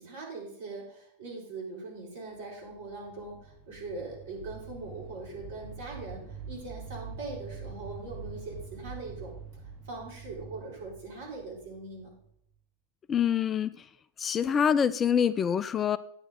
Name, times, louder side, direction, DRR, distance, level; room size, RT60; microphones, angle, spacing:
voice 1, 0.0-9.3 9.8-12.1, right 3 dB, 60° right, -2 dB, 3.8 m, -41 dB
sound 1, 2.5-12.3, right 5 dB, 20° right, 1.9 m, -45 dB
voice 2, 13.1-13.8 14.2-16.0, left 8 dB, 25° left, 17 dB, 0.3 m, -26 dB
9.9 x 9.0 x 3.9 m, 0.68 s
figure-of-eight pair, 90°, 0 cm